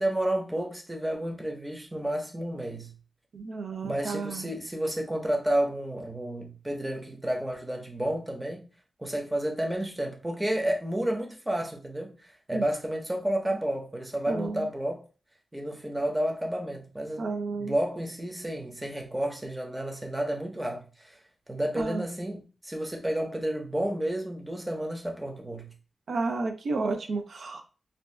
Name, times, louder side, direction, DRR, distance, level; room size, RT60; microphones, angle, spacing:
voice 1, 0.0-2.9 3.8-8.7 9.0-15.0 15.5-17.2 17.5-21.2 21.5-25.7, right 1 dB, 15° right, 0.7 m, -31 dB
voice 2, 3.3-4.5 12.5-12.6 14.3-14.7 17.2-17.7 21.8-22.1 26.1-27.6, right 3 dB, 80° right, 0.5 m, -31 dB
2.6 x 2.2 x 3.2 m
wide cardioid pair, 120°, 0 cm